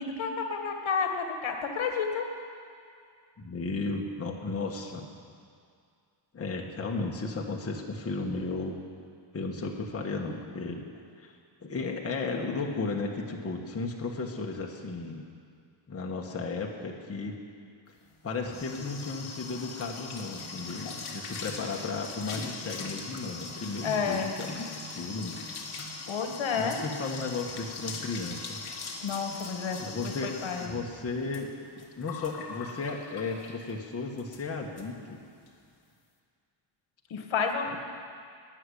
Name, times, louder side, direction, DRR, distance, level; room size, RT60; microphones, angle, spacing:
voice 1, 0.0-2.2 23.8-24.3 26.1-26.8 29.0-29.8 30.0-30.7 37.1-37.8, left 6 dB, 70° left, 4 dB, 1.7 m, -30 dB
voice 2, 3.4-5.1 6.3-8.8 9.3-10.8 11.2-11.3 11.6-15.3 15.9-17.4 18.2-25.4 26.5-28.6 29.8-31.5 32.0-35.2, left 3 dB, 30° left, 0 dB, 1.3 m, -34 dB
sound 1, 18.1-33.8 34.2-34.4 34.8-34.9 35.2-35.5, left 4 dB, 50° left, 2.0 m, -41 dB
18.5 x 6.7 x 9.9 m, 2.3 s
wide cardioid pair, 160°, 48 cm